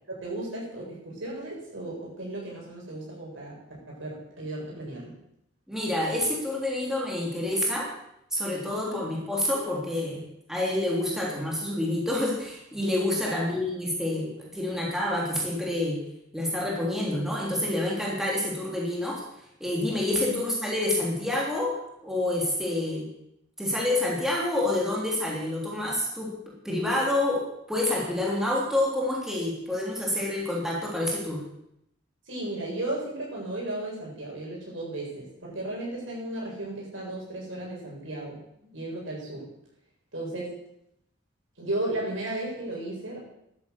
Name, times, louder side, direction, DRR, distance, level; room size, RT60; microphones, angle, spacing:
voice 1, 0.1-3.5 3.9-5.1 8.7-9.0 13.2-13.4 20.1-20.4 32.3-38.4 38.7-39.5 40.1-40.5 41.6-43.2, right 1 dB, 70° right, -3 dB, 7.9 m, -35 dB
voice 2, 5.7-7.9 8.3-10.2 10.5-16.0 16.3-19.2 19.6-23.1 23.6-26.3 26.6-31.4, left 1 dB, ahead, -4 dB, 3.3 m, -28 dB
12.5 x 10.5 x 8.3 m, 0.78 s
head